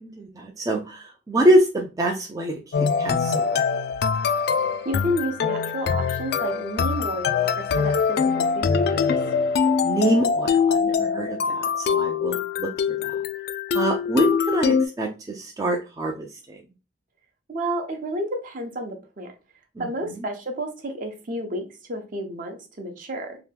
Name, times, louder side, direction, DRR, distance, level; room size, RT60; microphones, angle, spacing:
voice 1, 0.0-3.6 9.8-13.1 13.7-16.6 19.8-19.9, right 1 dB, 20° right, 1 dB, 0.3 m, -25 dB
sound 1, 2.7-14.9, left 6 dB, 60° left, 0.3 m, -23 dB
voice 2, 4.8-9.2 17.5-19.3 19.8-23.4, equal, 50° right, 4 dB, 0.7 m, -31 dB
2.9 x 2.2 x 3.3 m, 0.30 s
head